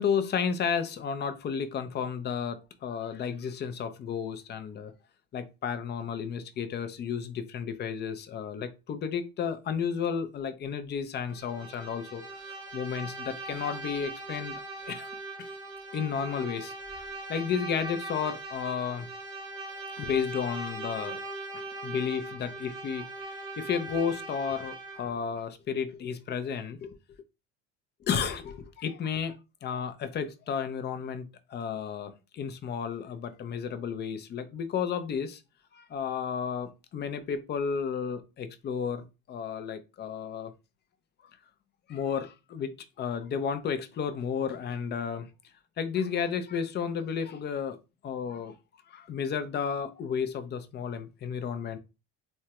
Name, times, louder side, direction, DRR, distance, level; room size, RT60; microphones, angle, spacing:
voice 1, 0.0-4.9 5.3-12.2 12.7-15.1 15.4-15.5 15.9-19.1 20.0-21.2 21.5-27.0 28.1-29.3 29.6-35.4 35.7-40.5 41.9-45.3 45.8-47.8 48.0-48.6 48.9-51.8, left 7 dB, 30° left, 0.5 m, -32 dB
Bowed string instrument, 11.3-25.2, right 2 dB, 10° right, 0.6 m, -40 dB
3.4 x 2.1 x 2.8 m
supercardioid pair, 105°, 32 cm